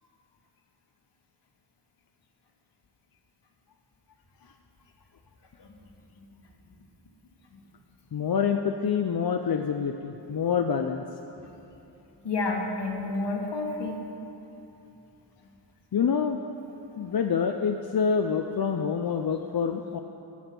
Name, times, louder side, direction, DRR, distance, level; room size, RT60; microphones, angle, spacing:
voice 1, 8.1-11.0 15.9-16.4 17.0-20.0, left 6 dB, 55° left, 5 dB, 0.6 m, -26 dB
voice 2, 12.2-14.0, left 3 dB, 75° left, 0 dB, 1.7 m, -30 dB
16.5 x 7.1 x 6.0 m, 2.9 s
wide cardioid pair, 100°, 43 cm